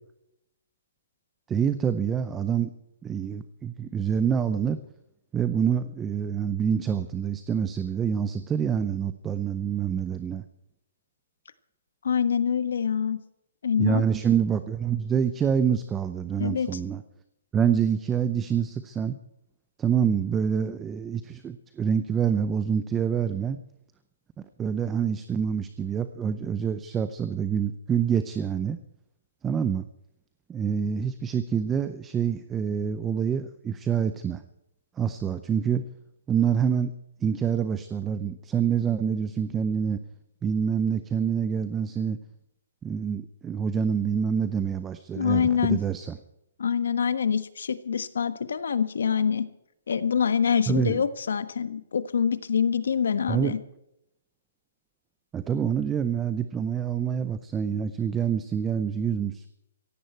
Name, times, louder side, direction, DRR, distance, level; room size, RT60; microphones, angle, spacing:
voice 1, 1.5-2.7 3.0-4.8 5.3-10.4 13.8-17.0 17.5-19.2 19.8-23.6 24.6-28.8 29.4-29.9 30.5-34.4 35.0-35.8 36.3-36.9 37.2-40.0 40.4-42.2 42.8-46.2 50.7-51.0 53.3-53.5 55.3-59.5, right 7 dB, 10° right, 11 dB, 0.5 m, -26 dB
voice 2, 12.0-13.2 13.6-14.0 16.4-16.8 45.2-45.8 46.6-49.5 49.9-53.6, left 7 dB, 70° left, 12 dB, 1.4 m, -25 dB
17.0 x 16.0 x 4.5 m, 0.83 s
hypercardioid pair, 170°, 0 cm